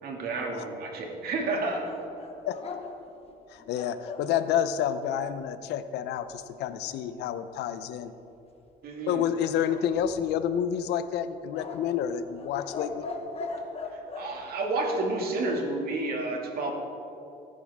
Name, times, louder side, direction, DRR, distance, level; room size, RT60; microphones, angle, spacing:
voice 1, 0.0-1.8 8.8-9.2 13.9-16.7, right 2 dB, 65° right, 1 dB, 2.4 m, -30 dB
sound 1, 1.7-4.3 9.7-10.5 11.5-14.3, left 4 dB, 35° left, 1.3 m, -39 dB
voice 2, 3.5-8.1 9.1-13.1, left 9 dB, 85° left, 12 dB, 0.7 m, -29 dB
18.0 x 10.5 x 3.6 m, 2.8 s
cardioid pair, 110°, 17 cm